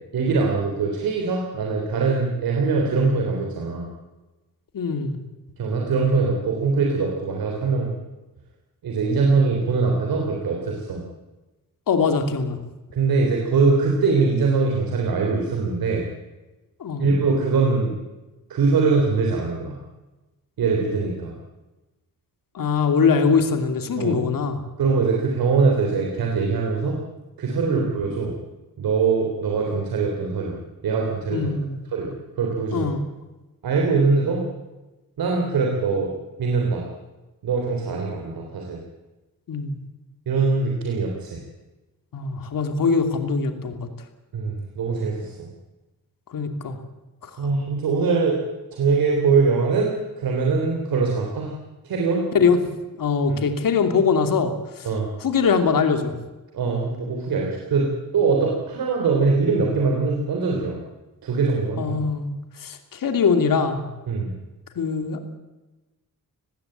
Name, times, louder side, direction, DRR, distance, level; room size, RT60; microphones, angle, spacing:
voice 1, 0.1-3.9 5.6-7.9 8.8-11.0 12.9-16.0 17.0-17.9 18.5-19.8 20.6-21.3 24.0-24.2 24.8-27.0 27.4-28.3 28.8-30.6 30.8-31.5 31.9-32.9 33.6-34.4 35.2-36.1 36.4-36.8 37.4-38.8 40.3-41.4 44.3-45.5 47.4-48.4 48.7-51.5 51.8-52.3 53.3-53.4 54.8-55.1 56.5-60.8 61.2-62.0 64.1-64.3, right 4 dB, 85° right, 1 dB, 3.7 m, -22 dB
voice 2, 4.7-5.2 11.9-12.6 16.8-17.0 22.5-24.6 27.6-27.8 31.3-31.8 32.7-33.0 39.5-39.8 42.1-43.8 46.3-46.8 52.3-52.6 53.0-54.5 55.2-56.1 61.8-62.3 62.6-63.9 64.8-65.3, left 5 dB, 70° left, 7 dB, 2.9 m, -22 dB
19.5 x 16.0 x 8.9 m, 1.1 s
cardioid pair, 90°, 35 cm